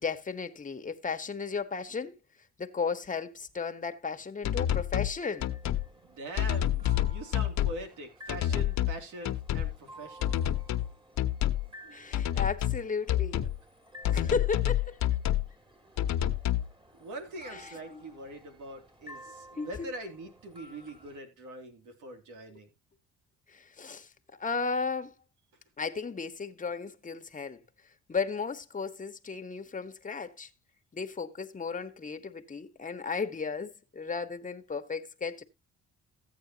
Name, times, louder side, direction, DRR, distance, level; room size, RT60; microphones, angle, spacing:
voice 1, 0.0-2.1 2.6-5.5 11.9-13.5 14.1-15.0 17.5-17.6 17.9-18.0 19.6-19.9 23.5-24.1 24.4-25.1 25.8-27.6 28.1-30.5 30.9-35.4, left 5 dB, 25° left, 1.3 m, -34 dB
sound 1, 4.4-5.1 5.4-5.8 6.4-7.8 8.3-9.0 9.2-9.7 10.2-10.9 11.2-11.7 12.1-12.8 13.1-13.6 14.0-15.5 16.0-16.7, left 12 dB, 65° left, 1.1 m, -28 dB
sound 2, 5.2-21.2, equal, 15° right, 3.0 m, -53 dB
voice 2, 6.0-10.5 17.0-22.7, right 2 dB, 80° right, 3.0 m, -43 dB
14.5 x 8.7 x 2.9 m
cardioid pair, 90°, 30 cm